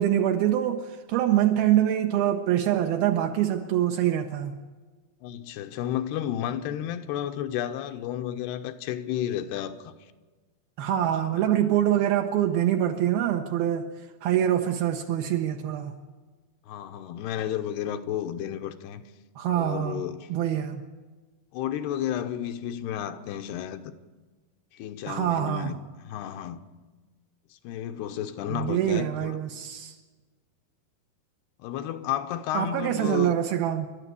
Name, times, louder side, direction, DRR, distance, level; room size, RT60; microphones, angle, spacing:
voice 1, 0.0-4.6 10.8-13.9 14.2-15.9 19.4-20.0 20.3-20.8 25.1-25.7 28.5-30.0 32.5-33.9, right 11 dB, 75° right, 2.7 m, -25 dB
voice 2, 5.2-9.9 11.2-11.6 16.7-19.0 19.5-20.3 21.5-23.9 24.7-26.6 27.5-29.4 31.6-33.4, left 10 dB, 85° left, 3.0 m, -32 dB
28.5 x 12.0 x 8.5 m
omnidirectional pair, 4.6 m